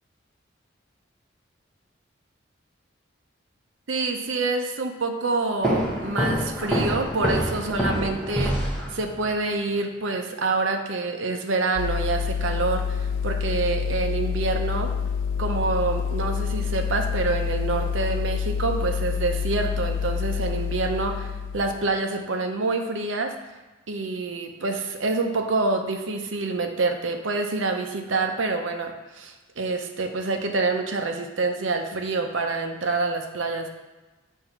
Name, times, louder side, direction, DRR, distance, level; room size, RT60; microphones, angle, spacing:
voice 1, 3.9-8.6 8.9-14.9 15.4-21.3 21.5-23.4 23.9-33.7, right 3 dB, 75° right, 4 dB, 0.7 m, -27 dB
sound 1, 5.6-9.3, equal, 5° left, 1.0 m, -26 dB
sound 2, 11.8-21.7, left 7 dB, 70° left, 0.3 m, -27 dB
7.8 x 2.7 x 5.7 m, 1.2 s
head